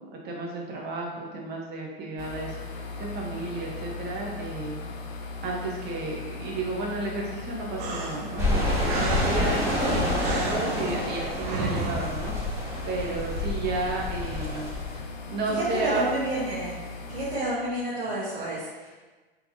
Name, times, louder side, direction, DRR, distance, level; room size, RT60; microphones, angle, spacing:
voice 1, 0.2-4.8 5.4-12.3 12.9-15.0 15.3-16.0, right 3 dB, 30° right, -1 dB, 1.1 m, -32 dB
sound 1, 2.2-17.4, left 3 dB, 45° left, 0.7 m, -39 dB
sound 2, 7.8-12.9, right 2 dB, 50° right, 0.9 m, -34 dB
sound 3, 8.4-15.0, left 1 dB, 10° right, 1.3 m, -28 dB
voice 2, 15.5-16.8 17.1-18.9, right 1 dB, 80° right, -8 dB, 1.3 m, -30 dB
4.5 x 4.0 x 2.8 m, 1.3 s
hypercardioid pair, 110°, 31 cm